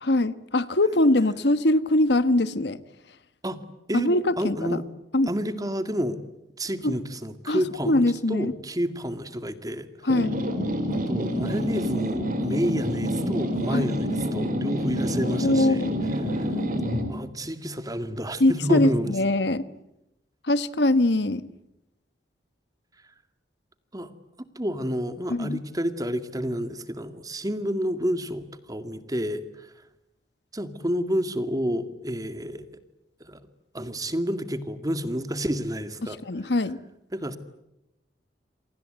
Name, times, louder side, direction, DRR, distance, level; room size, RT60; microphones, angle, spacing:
voice 1, 0.0-2.8 3.9-4.8 5.1-5.3 6.8-6.9 7.5-8.5 10.0-10.3 13.7-13.9 15.3-15.9 16.4-16.5 18.4-19.7 20.4-21.5 25.3-25.6 36.0-36.8, left 1 dB, 65° left, 1.2 m, -22 dB
voice 2, 3.9-4.8 5.3-6.2 6.6-9.9 10.9-15.8 16.4-16.5 17.1-19.1 23.9-24.1 24.4-29.7 30.5-32.7 33.2-33.4 33.7-36.2 37.1-37.4, equal, 20° right, 2.1 m, -29 dB
sound 1, 10.1-17.1, equal, 50° right, 4.8 m, -27 dB
28.5 x 24.5 x 8.1 m
head